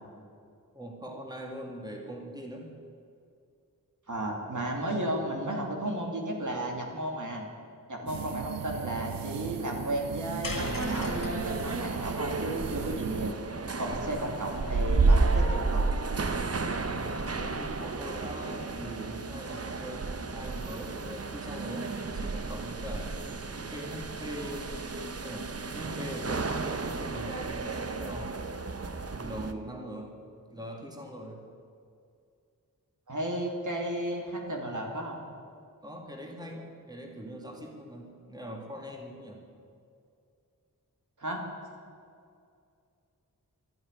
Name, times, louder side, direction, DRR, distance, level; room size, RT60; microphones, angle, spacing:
voice 1, 0.7-2.7 8.0-8.2 17.0-23.2 23.7-28.5 29.2-30.2 30.5-31.4 35.8-39.5, equal, 10° right, 1 dB, 2.1 m, -42 dB
voice 2, 4.1-7.4 7.9-13.3 13.8-15.9 33.1-35.2 41.2-41.4, right 1 dB, 60° right, 0 dB, 2.6 m, -33 dB
sound 1, 8.1-13.3, right 9 dB, 80° right, 0.5 m, -38 dB
sound 2, 10.4-14.8, left 3 dB, 70° left, 1.7 m, -42 dB
sound 3, 10.5-29.5, right 3 dB, 45° right, 0.9 m, -32 dB
12.5 x 10.5 x 9.7 m, 2.4 s
wide cardioid pair, 70°, 34 cm